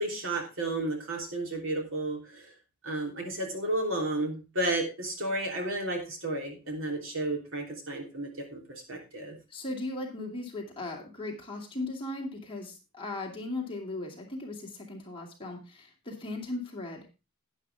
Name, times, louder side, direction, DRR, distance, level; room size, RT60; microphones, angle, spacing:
voice 1, 0.0-2.4 2.8-9.4, right 1 dB, 60° right, 2 dB, 3.2 m, -32 dB
voice 2, 9.5-17.1, left 2 dB, 25° left, 0 dB, 2.5 m, -37 dB
11.5 x 9.8 x 3.5 m, 0.28 s
head